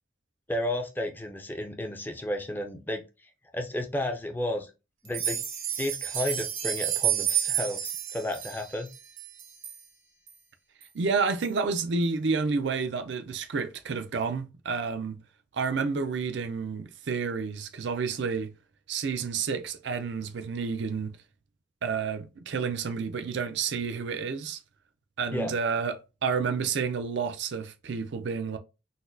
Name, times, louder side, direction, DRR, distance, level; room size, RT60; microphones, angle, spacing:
voice 1, 0.5-3.0 3.5-4.7 5.0-5.4 5.8-8.9 25.3-25.5, left 1 dB, 10° left, 0.5 m, -32 dB
sound 1, 5.0-9.8 10.3-10.4 10.8-10.9 11.4-11.5, right 11 dB, 80° right, 0.9 m, -30 dB
voice 2, 10.9-15.2 15.5-18.5 18.9-21.1 21.8-24.6 25.2-28.6, right 5 dB, 60° right, 0.4 m, -30 dB
4.0 x 2.2 x 2.6 m
head